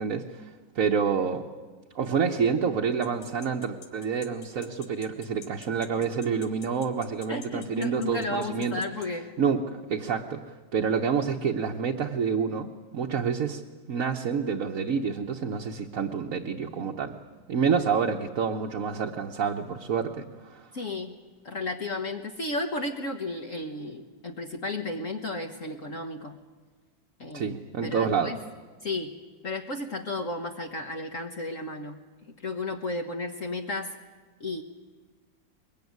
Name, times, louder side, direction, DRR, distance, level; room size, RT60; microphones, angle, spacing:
voice 1, 0.0-1.4 1.9-8.8 9.4-13.6 13.9-17.2 17.5-20.7 27.3-28.4, right 6 dB, 50° right, 0 dB, 1.3 m, -28 dB
sound 1, 3.0-9.1, left 6 dB, 90° left, 2.4 m, -47 dB
voice 2, 7.3-9.3 20.7-21.1 21.4-26.4 27.2-27.6 27.8-28.4 28.8-29.1 29.4-32.0 32.4-33.9 34.4-34.6, left 2 dB, 45° left, 3 dB, 1.5 m, -33 dB
22.5 x 22.0 x 9.5 m, 1.4 s
omnidirectional pair, 2.1 m